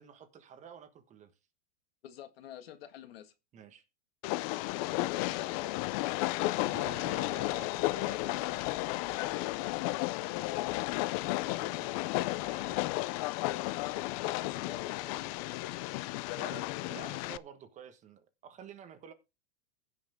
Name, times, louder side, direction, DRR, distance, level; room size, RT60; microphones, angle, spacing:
voice 1, 0.0-1.3 3.5-3.8 6.7-9.5 11.6-11.9 12.3-12.9 15.9-16.0 16.4-19.1, right 7 dB, 25° right, 1.3 m, -50 dB
voice 2, 2.0-3.3 4.8-5.7 6.2-7.6 10.3-10.6 14.3-15.4, left 10 dB, 75° left, 1.7 m, -49 dB
Train, 4.2-17.4, left 19 dB, 40° left, 0.4 m, -33 dB
16.0 x 5.8 x 3.5 m
supercardioid pair, 145°, 30 cm